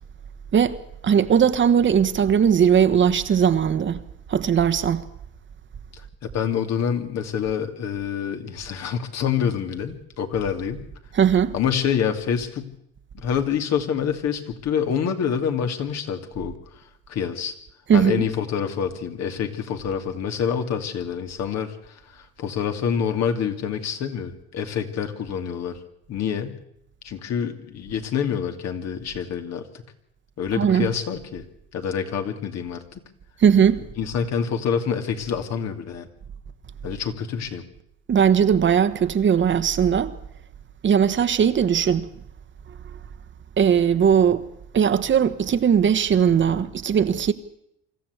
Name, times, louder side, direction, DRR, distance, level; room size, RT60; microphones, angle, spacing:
voice 1, 1.0-4.0 4.3-5.0 11.1-11.5 17.9-18.2 30.5-30.9 33.4-33.8 38.1-40.1 40.8-42.1 43.6-44.4 44.7-47.3, right 8 dB, 40° right, 1.3 m, -19 dB
voice 2, 5.9-10.8 11.5-12.7 13.1-16.5 17.1-17.5 17.9-25.8 26.1-26.5 27.0-29.8 30.4-31.4 31.7-33.0 34.0-36.1 36.8-37.6, left 7 dB, 60° left, 2.6 m, -27 dB
25.0 x 13.5 x 8.2 m
supercardioid pair, 85°, 30 cm